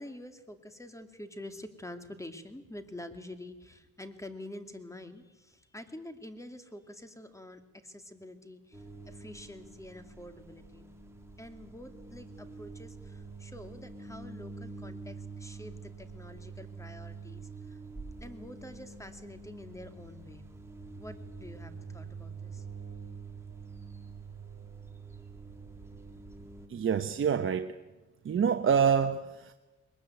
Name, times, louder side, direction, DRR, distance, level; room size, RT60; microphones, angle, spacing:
voice 1, 0.0-10.9 11.4-17.8 18.2-20.5 20.9-22.6, left 1 dB, 10° left, 2.6 m, -47 dB
sound 1, 8.7-26.7, right 4 dB, 10° right, 3.1 m, -46 dB
voice 2, 26.7-27.8 28.2-29.5, right 7 dB, 45° right, 1.1 m, -27 dB
22.0 x 20.5 x 9.4 m
cardioid pair, 90°, 30 cm